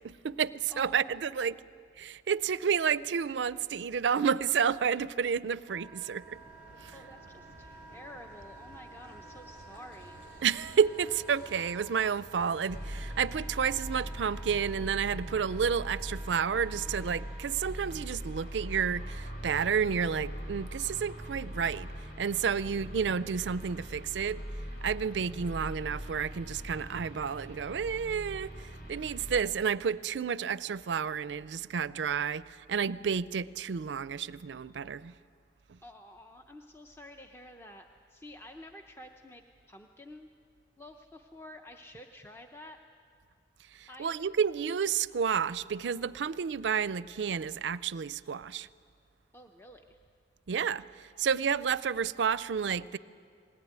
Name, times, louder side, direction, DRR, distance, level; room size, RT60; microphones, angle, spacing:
voice 1, 0.0-1.6 2.0-6.4 6.8-7.0 10.4-21.9 22.2-24.4 24.8-35.1 35.7-35.8 43.8-48.7 50.5-53.0, right 7 dB, 80° right, 0.4 m, -30 dB
voice 2, 0.7-1.8 6.9-10.3 35.8-40.3 40.8-42.8 43.9-44.2 49.3-50.0, left 1 dB, 15° left, 0.6 m, -50 dB
Wind instrument woodwind instrument, 5.7-17.5, right 4 dB, 5° right, 1.0 m, -53 dB
Car passing by / Idling / Accelerating revving vroom, 6.2-17.2, right 1 dB, 90° left, 4.7 m, -53 dB
sound 1, 12.7-29.4, equal, 60° left, 3.6 m, -41 dB
20.5 x 18.0 x 9.4 m
head